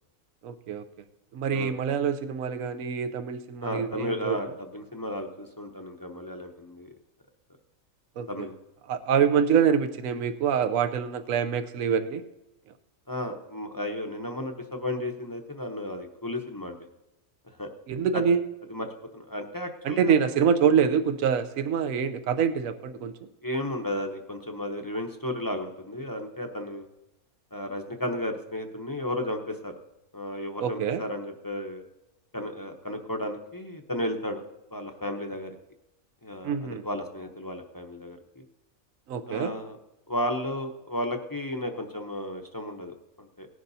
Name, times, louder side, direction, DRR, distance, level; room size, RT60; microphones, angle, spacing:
voice 1, 0.4-0.8 1.3-4.4 8.2-8.3 8.9-12.2 17.9-18.4 19.8-23.1 30.6-31.0 36.4-36.8 39.1-39.5, right 7 dB, 75° right, 9 dB, 1.1 m, -25 dB
voice 2, 3.6-6.9 8.3-8.5 13.1-16.9 17.6-17.7 18.1-18.2 18.7-20.3 23.4-26.8 27.5-29.7 30.1-31.8 32.3-34.4 34.7-35.5 36.2-38.4 39.3-39.8 40.1-43.5, left 1 dB, 20° left, 3 dB, 0.6 m, -34 dB
18.5 x 11.0 x 2.7 m, 0.94 s
omnidirectional pair, 1.5 m